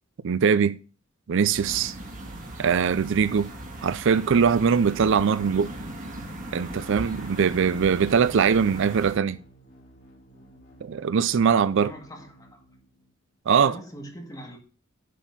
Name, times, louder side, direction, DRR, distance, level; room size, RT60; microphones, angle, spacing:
voice 1, 0.2-0.8 1.3-1.9 2.6-3.5 3.8-5.7 6.5-9.4 10.8-11.9 13.5-13.7, right 6 dB, 65° right, 0.4 m, -21 dB
sound 1, 1.4-13.3, equal, 60° left, 2.7 m, -53 dB
sound 2, 1.5-9.1, right 1 dB, 40° right, 2.1 m, -38 dB
voice 2, 11.8-12.7 13.6-14.6, equal, 20° left, 2.0 m, -42 dB
10.0 x 4.3 x 5.4 m
head